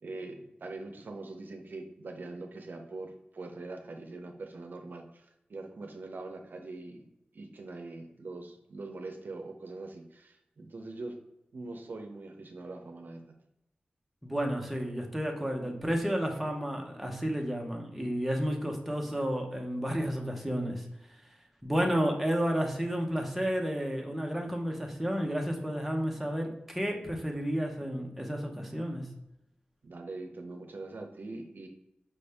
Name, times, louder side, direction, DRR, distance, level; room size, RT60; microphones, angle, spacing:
voice 1, 0.0-7.1 7.3-11.2 11.5-13.4 29.8-31.7, right 2 dB, 65° right, 4 dB, 0.6 m, -43 dB
voice 2, 14.2-20.9 21.6-29.1, equal, ahead, 0 dB, 0.8 m, -31 dB
5.4 x 2.6 x 3.4 m, 0.87 s
wide cardioid pair, 75°, 3 cm